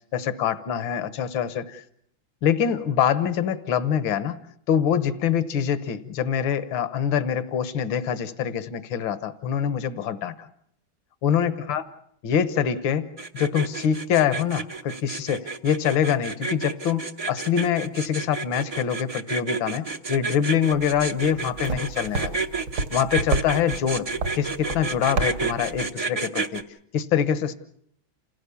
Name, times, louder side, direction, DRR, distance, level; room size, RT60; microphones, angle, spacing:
voice 1, 0.1-1.8 2.4-4.4 4.7-10.5 11.2-11.8 12.2-13.1 13.3-22.4 22.9-24.1 24.4-26.6 26.9-27.5, left 8 dB, 75° left, 13 dB, 1.8 m, -24 dB
sound 1, 13.2-26.6, right 4 dB, 40° right, 0.5 m, -30 dB
sound 2, 20.7-25.9, right 3 dB, 70° right, 2.3 m, -31 dB
28.0 x 16.5 x 7.0 m, 0.69 s
omnidirectional pair, 2.2 m